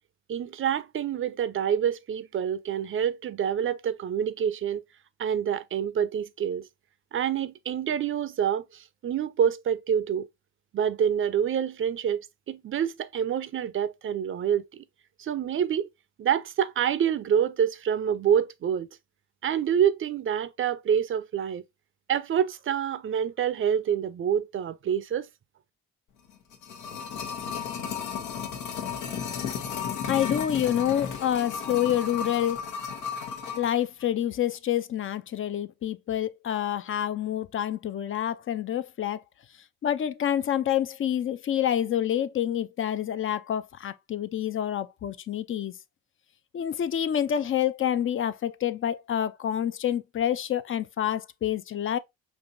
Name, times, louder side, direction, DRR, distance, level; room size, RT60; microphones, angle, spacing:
voice 1, 0.3-4.8 5.2-6.7 7.1-10.3 10.7-14.8 15.2-15.9 16.2-18.9 19.4-21.6 22.1-25.3, right 8 dB, 45° right, 0.5 m, -27 dB
sound 1, 26.3-33.7 34.0-34.1, left 7 dB, 90° left, 1.0 m, -34 dB
voice 2, 30.1-32.6 33.6-39.2 39.8-45.7 46.5-52.0, left 10 dB, 45° left, 0.5 m, -27 dB
5.3 x 3.0 x 2.6 m
cardioid pair, 90°, 30 cm